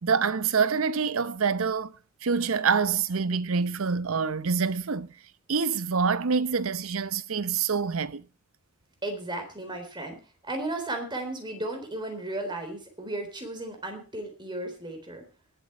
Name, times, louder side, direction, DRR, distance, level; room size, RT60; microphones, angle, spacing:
voice 1, 0.0-1.9 2.2-5.1 5.5-8.2, right 5 dB, 75° right, 0.7 m, -26 dB
voice 2, 9.0-10.2 10.4-15.3, right 2 dB, 20° right, 3.8 m, -34 dB
20.0 x 8.3 x 4.4 m
head